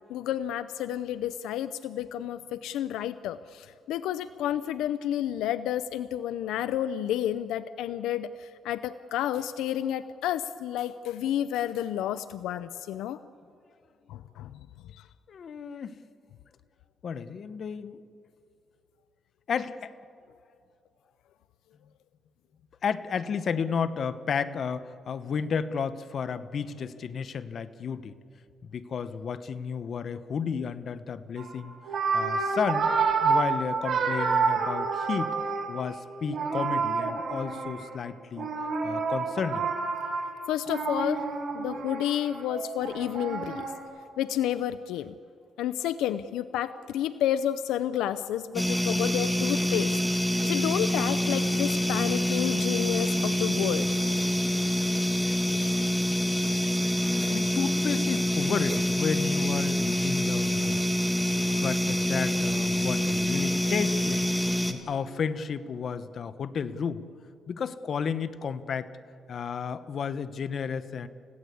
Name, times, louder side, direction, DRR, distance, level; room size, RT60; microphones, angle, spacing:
voice 1, 0.1-13.2 14.1-14.5 14.9-15.0 40.5-41.2 41.5-43.7 44.2-45.1 45.6-50.0 50.4-53.9, left 11 dB, 90° left, 14 dB, 0.5 m, -30 dB
voice 2, 15.3-16.0 17.0-18.0 19.5-19.9 22.8-28.2 28.6-31.8 32.1-32.9 33.2-35.3 35.7-38.5 38.8-39.7 56.9-60.9 61.5-64.3 64.6-67.0 67.5-68.9 69.3-71.1, left 6 dB, 55° left, 13 dB, 1.1 m, -32 dB
sound 1, 31.4-31.5 31.8-35.9 36.2-38.0 38.4-43.8, right 5 dB, 50° right, 5.2 m, -29 dB
sound 2, 48.5-64.7, left 1 dB, ahead, 2.1 m, -26 dB
29.5 x 16.5 x 8.5 m, 2.5 s
cardioid pair, 90°, 0 cm